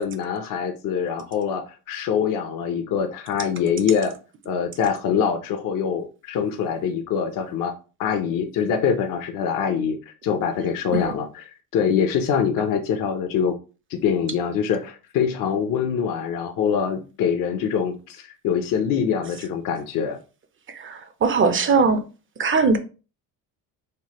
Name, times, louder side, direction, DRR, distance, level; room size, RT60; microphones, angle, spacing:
voice 1, 0.0-4.1 4.5-7.7 8.0-13.6 13.9-20.2, left 7 dB, 55° left, 0.6 m, -24 dB
voice 2, 20.7-22.0 22.4-22.8, right 4 dB, 30° right, 0.5 m, -20 dB
3.2 x 2.0 x 2.9 m
cardioid pair, 90°, 39 cm